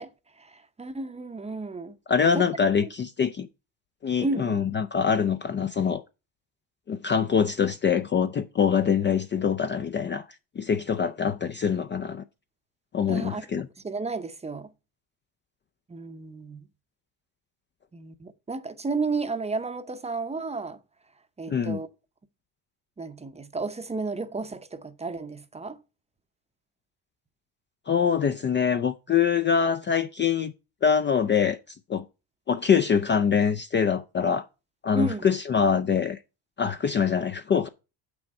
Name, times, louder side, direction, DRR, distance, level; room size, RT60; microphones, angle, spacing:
voice 1, 0.0-2.0 2.3-2.4 4.2-4.6 13.1-13.5 13.8-14.7 15.9-16.6 17.9-20.8 21.4-21.9 23.0-25.8 34.9-35.2, right 3 dB, 15° right, 0.7 m, -32 dB
voice 2, 2.1-3.5 4.0-6.0 6.9-10.3 10.6-12.2 12.9-13.7 21.5-21.8 27.9-30.5 30.8-32.0 32.5-34.5 34.8-36.2 36.6-37.7, left 7 dB, 25° left, 0.4 m, -24 dB
7.5 x 6.2 x 4.2 m
cardioid pair, 130°, 43 cm